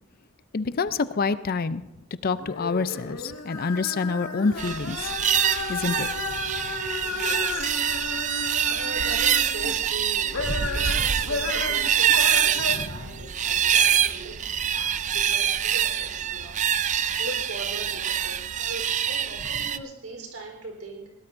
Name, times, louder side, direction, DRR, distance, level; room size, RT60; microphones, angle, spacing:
voice 1, 0.5-1.8 2.2-5.1 5.7-6.1 12.8-12.9, left 4 dB, 45° left, 14 dB, 0.5 m, -27 dB
sound 1, 2.3-9.8 10.2-12.7, left 3 dB, 75° left, 1.7 m, -33 dB
sound 2, 4.6-19.8, right 9 dB, 35° right, 0.4 m, -25 dB
voice 2, 7.0-14.3 14.6-21.1, right 2 dB, 85° right, 1 dB, 4.0 m, -40 dB
21.0 x 18.0 x 2.6 m, 0.97 s
head